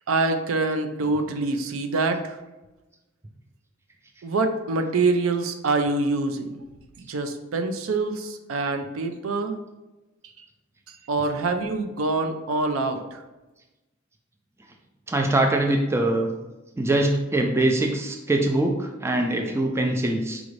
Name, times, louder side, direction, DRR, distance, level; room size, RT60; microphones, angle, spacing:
voice 1, 0.1-2.4 4.2-6.6 7.0-9.6 10.9-13.2, right 3 dB, 75° right, 7 dB, 0.4 m, -25 dB
voice 2, 15.1-16.3 16.8-20.4, right 1 dB, 10° right, 2 dB, 0.3 m, -23 dB
4.9 x 2.5 x 3.1 m, 1.0 s
head